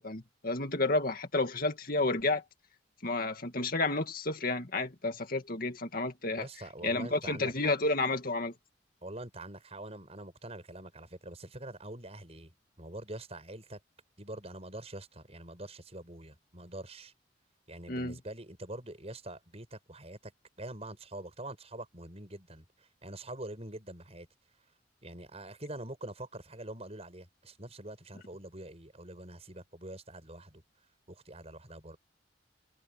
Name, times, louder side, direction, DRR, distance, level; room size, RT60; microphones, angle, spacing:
voice 1, 0.0-2.4 3.0-6.5 6.8-8.5 17.9-18.2, left 2 dB, 50° left, 2.2 m, -31 dB
voice 2, 6.3-7.7 9.0-13.8 14.2-17.1 17.7-20.3 20.6-24.3 25.0-30.6 31.1-32.0, right 1 dB, 35° right, 6.7 m, -45 dB
head